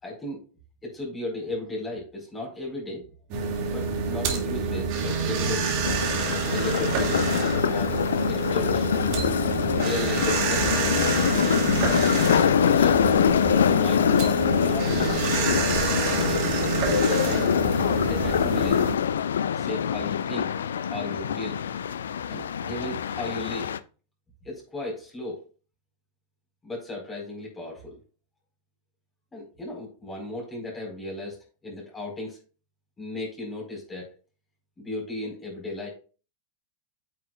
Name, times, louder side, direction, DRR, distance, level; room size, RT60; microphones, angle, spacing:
voice 1, 0.0-0.4 0.8-3.1 3.6-5.7 6.5-7.2 7.5-9.0 9.7-10.9 12.2-13.2 13.6-14.1 14.6-15.8 16.1-17.5 18.0-18.8 19.5-20.5 20.9-21.6 22.3-23.7 24.4-25.4 26.6-28.0 29.3-32.4 33.0-34.1 34.8-35.9, left 2 dB, 15° left, -1 dB, 4.6 m, -35 dB
sound 1, 3.3-18.9, right 4 dB, 45° right, 2.3 m, -27 dB
sound 2, 5.8-23.8, left 8 dB, 65° left, 0.4 m, -24 dB
9.0 x 7.7 x 2.4 m, 0.36 s
figure-of-eight pair, 90°, 0 cm